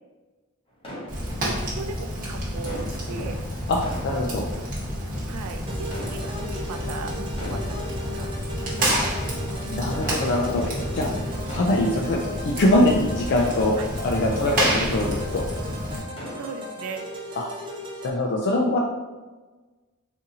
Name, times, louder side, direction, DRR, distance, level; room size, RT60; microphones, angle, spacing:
sound 1, 0.8-1.9 2.7-5.0 5.8-6.8 7.3-8.2 8.6-15.6 15.9-17.0 17.4-17.5 18.1-18.3, equal, 25° left, 0.8 m, -41 dB
Fire, 1.1-16.0, equal, 40° right, 1.0 m, -29 dB
voice 1, 1.4-3.4 5.3-7.1 7.4-8.9 13.8-13.9 16.3-17.0, right 4 dB, 90° right, 6 dB, 0.4 m, -37 dB
voice 2, 4.0-4.4 8.8-9.1 9.7-11.1 11.5-15.5 17.4-17.5 18.0-18.8, left 1 dB, 50° left, -1 dB, 0.3 m, -23 dB
sound 2, 5.7-18.1, equal, 25° right, 0.4 m, -38 dB
3.9 x 2.6 x 2.7 m, 1.2 s
head